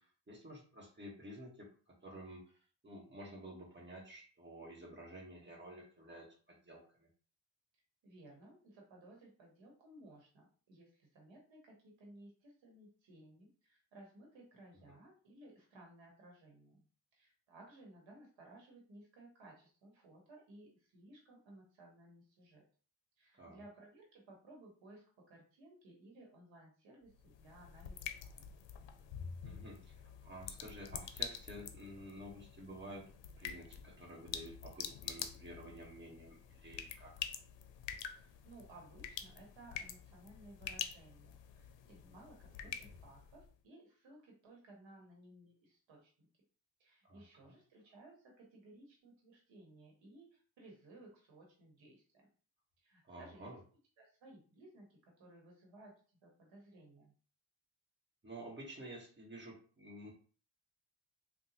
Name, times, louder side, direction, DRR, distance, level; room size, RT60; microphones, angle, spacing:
voice 1, 0.0-2.4 2.8-7.1 23.3-23.6 29.4-33.1 33.4-37.1 47.0-47.2 53.1-53.6 58.2-60.1, right 1 dB, 25° right, -2 dB, 1.4 m, -51 dB
voice 2, 8.0-16.8 17.1-22.6 23.2-28.5 38.2-46.3 46.8-52.3 52.8-53.6 54.0-55.9 56.2-57.1, right 1 dB, 90° right, 0 dB, 1.1 m, -59 dB
sound 1, 27.1-43.5, left 8 dB, 75° left, 0.5 m, -47 dB
3.6 x 2.2 x 2.9 m, 0.41 s
cardioid pair, 75°, 44 cm